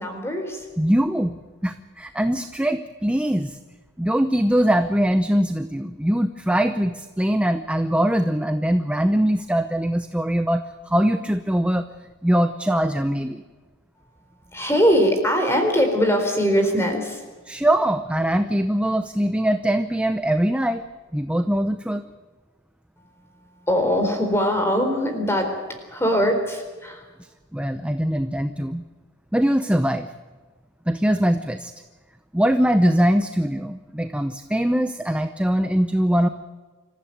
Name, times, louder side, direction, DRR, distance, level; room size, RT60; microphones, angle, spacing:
voice 1, 0.0-0.7 14.5-17.2 23.5-25.5 25.9-27.1, equal, 10° left, 5 dB, 4.1 m, -21 dB
voice 2, 0.8-1.4 1.6-3.6 4.0-11.9 12.2-13.4 17.5-20.8 21.1-22.0 27.5-28.8 29.3-30.1 30.9-31.7 32.3-36.3, equal, 5° right, 8 dB, 0.7 m, -22 dB
26.5 x 15.0 x 9.3 m, 1.4 s
head